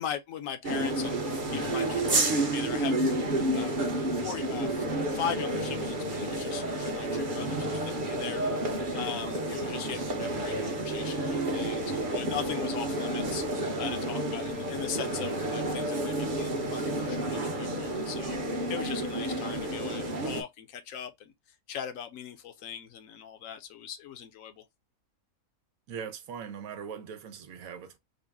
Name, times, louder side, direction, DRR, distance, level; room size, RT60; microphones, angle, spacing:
voice 1, 0.0-3.2 3.5-4.9 5.1-21.3 21.7-24.6, left 8 dB, 70° left, 1.0 m, -39 dB
sound 1, 0.6-20.4, right 1 dB, 40° right, 0.9 m, -30 dB
voice 2, 25.9-28.0, right 7 dB, 80° right, 1.2 m, -40 dB
3.9 x 2.1 x 3.5 m
omnidirectional pair, 1.5 m